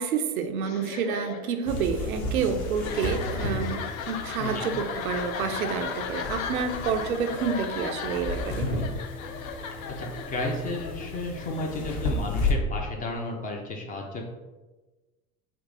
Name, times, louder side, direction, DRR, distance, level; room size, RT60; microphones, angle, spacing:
voice 1, 0.0-3.8 4.1-8.7, right 6 dB, 75° right, 7 dB, 0.5 m, -29 dB
sound 1, 0.6-12.3, left 6 dB, 70° left, 0.5 m, -37 dB
sound 2, 1.7-12.5, left 2 dB, 50° left, 0.8 m, -33 dB
voice 2, 10.0-14.2, left 2 dB, 20° left, 1 dB, 0.4 m, -33 dB
3.7 x 2.5 x 3.6 m, 1.2 s
figure-of-eight pair, 75°, 43 cm